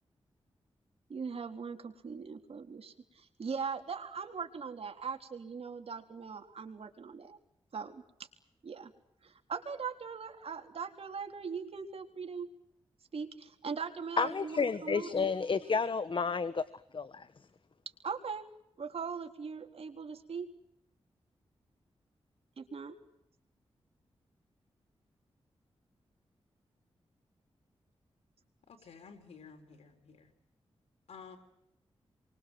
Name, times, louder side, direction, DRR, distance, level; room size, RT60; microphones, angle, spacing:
voice 1, 1.1-7.4 7.7-8.0 8.6-8.9 9.2-12.5 13.1-15.1 18.0-18.4 18.8-20.5 22.6-23.0, right 5 dB, 70° right, 5 dB, 3.8 m, -40 dB
voice 2, 14.2-16.6 16.9-17.3, left 5 dB, 50° left, 13 dB, 1.3 m, -31 dB
voice 3, 28.7-30.3 31.1-31.4, left 5 dB, 85° left, 4 dB, 3.9 m, -52 dB
28.5 x 24.5 x 7.9 m, 0.78 s
cardioid pair, 60°, 11 cm